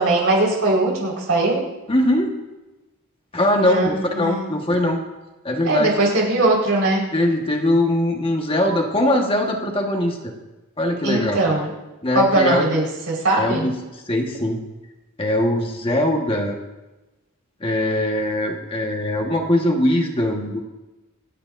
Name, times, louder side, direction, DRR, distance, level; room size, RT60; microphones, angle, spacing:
voice 1, 0.0-1.6 3.6-4.5 5.6-7.1 11.0-11.7 12.1-13.7, right 2 dB, 75° right, -3 dB, 4.7 m, -20 dB
voice 2, 1.9-2.3 3.3-5.0 5.4-5.9 7.1-10.3 10.8-11.4 12.0-12.7 13.4-13.7 14.1-14.6 15.2-16.6 17.6-20.6, left 1 dB, 25° left, 1 dB, 1.4 m, -21 dB
27.0 x 10.0 x 2.6 m, 1.1 s
head